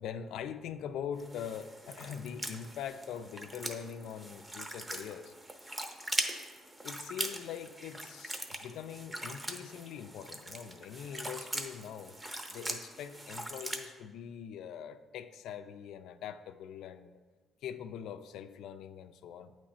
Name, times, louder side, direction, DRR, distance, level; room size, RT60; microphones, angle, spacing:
voice 1, 0.0-5.3 6.8-12.2 12.5-17.2 17.6-19.6, left 8 dB, 85° left, 10 dB, 0.3 m, -43 dB
sound 1, 1.2-13.9, right 1 dB, 15° right, 0.7 m, -41 dB
8.4 x 3.1 x 4.1 m, 1.4 s
cardioid pair, 90°, 0 cm